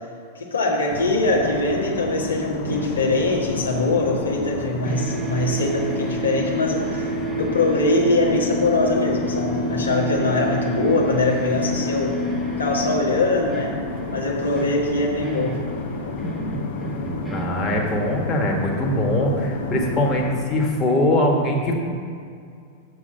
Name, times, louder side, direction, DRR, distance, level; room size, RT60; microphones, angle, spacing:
voice 1, 0.3-7.1 7.4-12.1 12.6-13.7 14.1-15.6, left 2 dB, 75° left, -2 dB, 1.3 m, -22 dB
sound 1, 0.9-20.4, left 4 dB, 55° left, 0.8 m, -31 dB
sound 2, 2.0-12.0, equal, 45° right, 2.0 m, -41 dB
Long set-up noise with subtle body shots, 2.4-4.6 4.9-18.8, right 2 dB, 10° right, 1.1 m, -31 dB
voice 2, 17.3-21.7, left 1 dB, 20° left, -1 dB, 1.5 m, -22 dB
7.0 x 6.0 x 6.7 m, 2.3 s
figure-of-eight pair, 90°, 0 cm